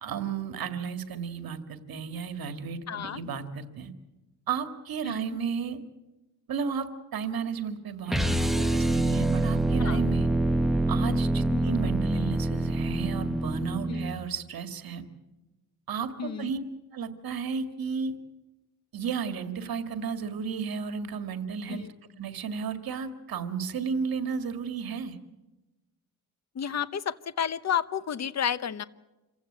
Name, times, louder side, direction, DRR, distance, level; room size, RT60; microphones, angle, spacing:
voice 1, 0.0-3.9 4.5-5.8 6.5-10.3 10.9-15.1 15.9-16.6 16.9-18.2 18.9-21.9 22.2-25.2, right 6 dB, 70° right, 9 dB, 2.0 m, -33 dB
voice 2, 2.9-3.2 5.0-5.4 9.8-10.0 11.5-11.7 13.9-14.1 16.2-16.5 21.7-21.9 26.5-28.8, left 8 dB, 45° left, 16 dB, 0.9 m, -31 dB
sound 1, 8.1-14.2, right 1 dB, ahead, 0.9 m, -26 dB
27.0 x 15.5 x 8.8 m, 1.1 s
cardioid pair, 115°, 36 cm